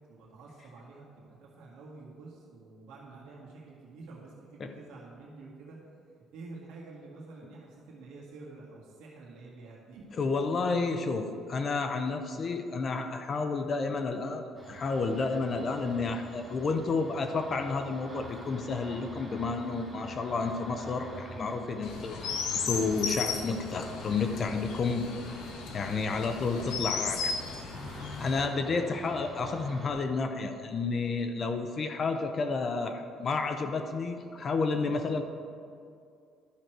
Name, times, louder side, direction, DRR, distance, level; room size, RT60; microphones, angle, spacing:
voice 1, 0.1-5.9 6.3-10.2, right 3 dB, 80° right, -4 dB, 1.8 m, -48 dB
voice 2, 10.2-25.1 25.7-27.4 28.2-35.2, left 4 dB, 30° left, 7 dB, 0.5 m, -31 dB
sound 1, 14.6-29.9, right 1 dB, 5° right, 1.5 m, -47 dB
Chirp tweet, 21.8-28.5, left 5 dB, 85° left, 0.9 m, -36 dB
11.5 x 6.3 x 4.5 m, 2.4 s
cardioid pair, 175°, 0 cm